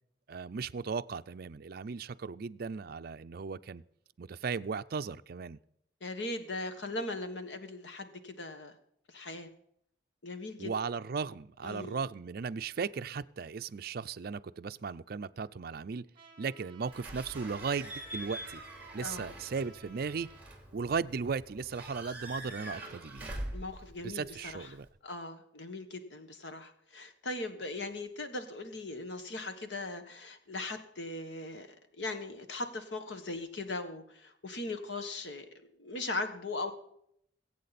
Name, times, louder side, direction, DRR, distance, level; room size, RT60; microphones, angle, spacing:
voice 1, 0.3-3.8 4.2-5.6 10.6-16.1 16.4-18.6 18.9-20.3 20.7-23.2 24.0-24.9, right 5 dB, 55° right, 12 dB, 0.5 m, -36 dB
voice 2, 6.0-8.8 9.1-9.5 10.2-10.7 11.6-12.0 19.0-19.3 23.5-24.7 25.0-35.5 35.8-36.7, left 2 dB, 80° left, 8 dB, 1.4 m, -39 dB
Trumpet, 16.1-20.5, right 5 dB, 30° right, 2.6 m, -57 dB
Slam / Squeak / Alarm, 16.9-24.9, right 1 dB, 10° right, 3.1 m, -45 dB
22.5 x 8.5 x 4.2 m, 0.71 s
head